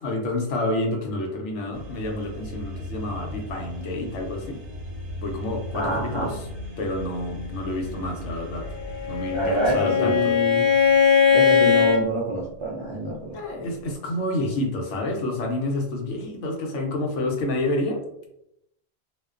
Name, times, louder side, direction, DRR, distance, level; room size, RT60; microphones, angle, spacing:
voice 1, 0.0-4.6 5.2-6.5 6.8-8.7 9.1-10.4 13.3-18.0, left 1 dB, 85° left, 1 dB, 0.9 m, -29 dB
sound 1, 1.7-9.7, left 1 dB, 80° right, 1.0 m, -37 dB
voice 2, 5.7-6.3 9.3-10.7 11.3-13.7, right 2 dB, 45° right, -6 dB, 0.4 m, -27 dB
Bowed string instrument, 8.8-12.0, left 7 dB, 50° left, 0.5 m, -19 dB
2.5 x 2.1 x 2.3 m, 0.80 s
omnidirectional pair, 1.2 m